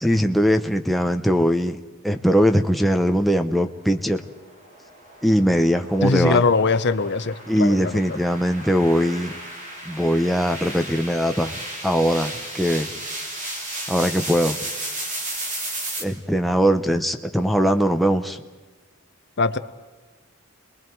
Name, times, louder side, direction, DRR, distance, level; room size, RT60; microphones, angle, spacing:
voice 1, 0.0-1.8 2.0-4.2 5.2-6.4 7.5-9.3 9.9-11.6 11.8-12.9 13.9-14.6 16.0-18.4, equal, ahead, 5 dB, 0.8 m, -20 dB
sound 1, 4.0-16.0, right 1 dB, 35° right, 3.1 m, -34 dB
voice 2, 6.0-7.9 19.4-19.6, left 4 dB, 55° left, 12 dB, 0.8 m, -21 dB
30.0 x 21.0 x 4.6 m, 1.3 s
head